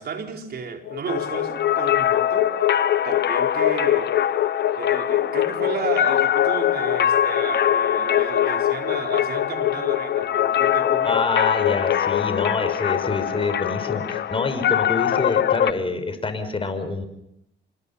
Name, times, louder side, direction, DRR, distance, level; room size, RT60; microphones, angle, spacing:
voice 1, 0.0-2.5 3.0-4.1 4.8-11.1, right 6 dB, 55° right, 4.7 m, -33 dB
sound 1, 0.7-15.0, left 13 dB, 90° left, 1.5 m, -25 dB
sound 2, 1.1-15.7, left 10 dB, 55° left, 0.9 m, -24 dB
voice 2, 11.0-17.1, left 3 dB, 25° left, 5.8 m, -26 dB
27.5 x 24.5 x 5.7 m
cardioid pair, 90°, 20 cm